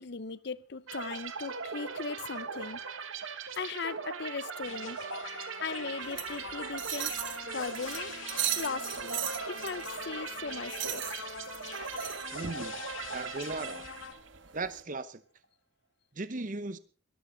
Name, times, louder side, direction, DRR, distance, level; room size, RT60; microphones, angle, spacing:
voice 1, 0.0-2.8 3.5-5.1 5.6-7.1 7.5-8.1 8.6-9.2 9.5-11.1, left 5 dB, 55° left, 0.7 m, -38 dB
sound 1, 0.9-14.4, right 5 dB, 80° right, 1.6 m, -40 dB
sound 2, 4.6-14.1, left 6 dB, 75° left, 1.8 m, -44 dB
sound 3, 6.0-14.8, right 12 dB, 65° right, 1.6 m, -39 dB
voice 2, 12.3-12.8 13.1-13.9 14.5-15.2 16.1-16.8, right 3 dB, 40° right, 0.8 m, -37 dB
21.5 x 13.5 x 3.9 m
head